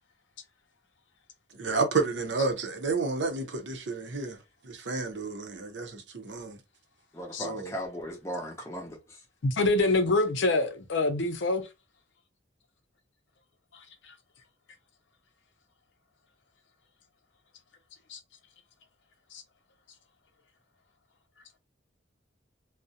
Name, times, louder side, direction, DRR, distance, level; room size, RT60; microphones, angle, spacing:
voice 1, 1.5-4.4 4.6-6.6 7.4-7.7, right 4 dB, 65° right, 0.6 m, -31 dB
voice 2, 7.1-9.2, equal, 15° left, 0.6 m, -37 dB
voice 3, 9.4-11.6 18.1-18.2 19.3-19.4, left 2 dB, 70° left, 0.6 m, -25 dB
2.4 x 2.0 x 2.7 m
head